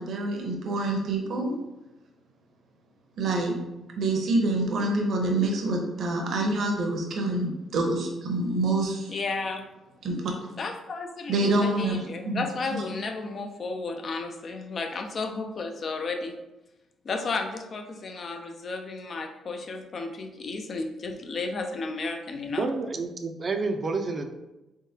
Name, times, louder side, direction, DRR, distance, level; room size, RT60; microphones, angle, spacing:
voice 1, 0.0-1.6 3.2-3.6 3.9-9.1 10.0-10.5 11.3-12.8, right 2 dB, 65° right, 1 dB, 0.9 m, -27 dB
voice 2, 9.1-9.6 10.6-16.4 17.0-22.7, left 3 dB, 50° left, 5 dB, 0.5 m, -33 dB
voice 3, 22.6-24.3, right 3 dB, 40° right, 6 dB, 0.5 m, -29 dB
3.6 x 3.6 x 2.8 m, 0.98 s
cardioid pair, 90°, 0 cm